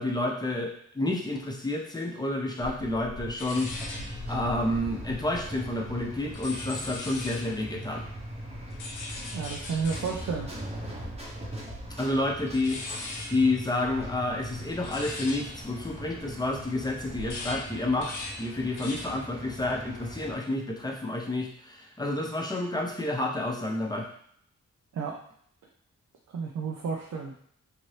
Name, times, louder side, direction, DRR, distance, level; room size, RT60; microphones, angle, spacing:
voice 1, 0.0-3.7 4.3-8.0 12.0-12.8 13.3-24.1, left 2 dB, 15° left, 0 dB, 0.6 m, -29 dB
sound 1, 2.6-7.6 8.0-16.6 17.0-19.3 19.6-20.0, left 2 dB, 80° left, 0.6 m, -41 dB
sound 2, 3.6-20.3, right 1 dB, 20° right, 0.8 m, -41 dB
voice 2, 9.3-10.5 24.9-25.2 26.3-27.3, right 5 dB, 70° right, -1 dB, 0.5 m, -31 dB
2.8 x 2.6 x 3.2 m, 0.64 s
cardioid pair, 85°, 30 cm